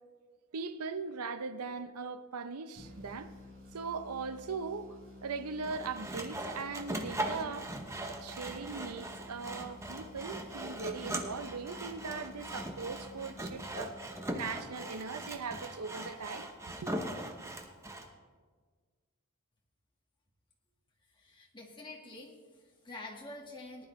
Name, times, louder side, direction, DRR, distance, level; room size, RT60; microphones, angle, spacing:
voice 1, 0.5-3.3 3.7-7.7 8.2-16.5 16.8-16.9, right 4 dB, 90° right, 0.6 m, -40 dB
sound 1, 2.8-14.5, left 2 dB, 65° right, 3.4 m, -52 dB
Sawing, 5.6-18.1, right 1 dB, 15° right, 0.8 m, -40 dB
voice 2, 21.1-23.9, left 2 dB, 20° left, 1.6 m, -47 dB
18.5 x 10.5 x 3.1 m
head